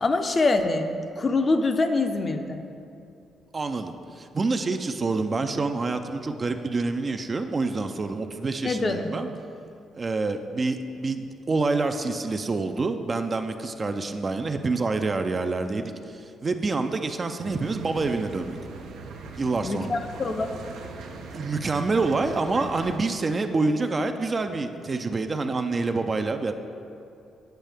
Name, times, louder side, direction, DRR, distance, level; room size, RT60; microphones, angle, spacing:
voice 1, 0.0-2.6 8.6-9.2 19.6-20.6, left 3 dB, 35° left, 6 dB, 0.5 m, -25 dB
voice 2, 3.5-9.3 9.9-18.6 19.4-20.0 21.3-26.5, right 3 dB, 35° right, 7 dB, 0.4 m, -27 dB
sound 1, 17.4-23.0, right 4 dB, 80° right, 0.6 m, -40 dB
8.9 x 5.4 x 3.4 m, 2.6 s
cardioid pair, 90°, 0 cm